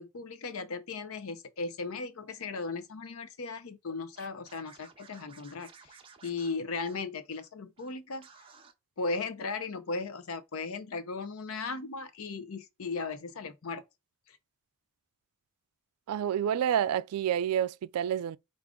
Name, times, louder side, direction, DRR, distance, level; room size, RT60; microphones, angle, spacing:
voice 1, 0.0-5.9 6.2-8.3 9.0-13.8 14.3-14.4, left 4 dB, 70° left, 0.6 m, -37 dB
Scratching (performance technique), 4.1-7.5 7.8-7.9 8.2-8.7, right 5 dB, 25° right, 0.5 m, -56 dB
voice 2, 16.1-18.4, right 9 dB, 80° right, 0.3 m, -28 dB
4.9 x 2.5 x 3.6 m
head